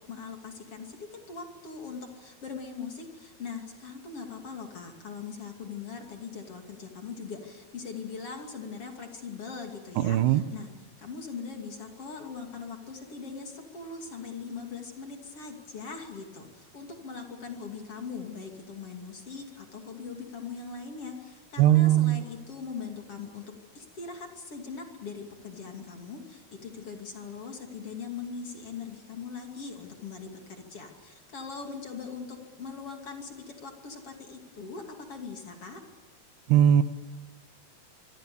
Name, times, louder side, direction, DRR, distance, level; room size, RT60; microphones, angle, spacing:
voice 1, 0.1-10.7 11.0-23.4 23.7-35.8, left 5 dB, 40° left, 3 dB, 3.2 m, -41 dB
voice 2, 10.0-10.4 21.6-22.2 36.5-36.8, right 11 dB, 85° right, 12 dB, 3.1 m, -20 dB
25.0 x 24.5 x 7.1 m, 1.3 s
omnidirectional pair, 4.6 m